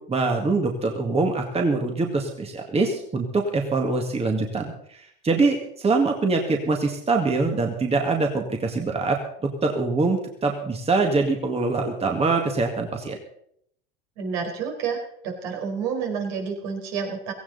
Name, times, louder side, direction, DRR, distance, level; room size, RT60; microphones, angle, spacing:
voice 1, 0.1-9.2 9.6-13.2, right 3 dB, 20° right, 3 dB, 2.0 m, -24 dB
voice 2, 14.2-17.3, right 6 dB, 65° right, 2 dB, 4.5 m, -29 dB
16.5 x 15.5 x 4.1 m, 0.69 s
hypercardioid pair, 90°, 29 cm